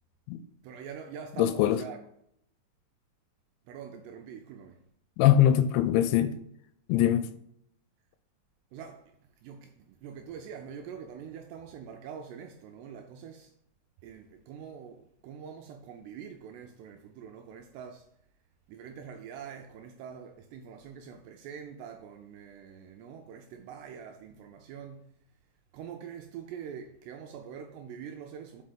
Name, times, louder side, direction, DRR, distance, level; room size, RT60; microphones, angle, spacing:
voice 1, 0.6-2.0 3.7-4.8 8.7-13.5 14.0-18.1 18.7-25.1 25.7-28.6, right 7 dB, 80° right, 2.5 m, -44 dB
voice 2, 1.4-1.8 5.2-6.3 6.9-7.3, left 11 dB, 85° left, 2.7 m, -22 dB
5.7 x 5.6 x 5.2 m
omnidirectional pair, 5.4 m